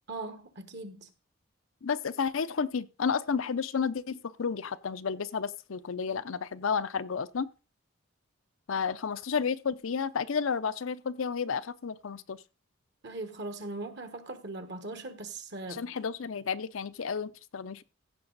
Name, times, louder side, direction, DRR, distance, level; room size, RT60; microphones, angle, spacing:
voice 1, 0.1-1.1 13.0-15.9, right 2 dB, 55° right, 1.3 m, -40 dB
voice 2, 1.8-7.5 8.7-12.4 15.7-17.8, left 6 dB, 70° left, 0.6 m, -31 dB
15.5 x 6.0 x 4.0 m
head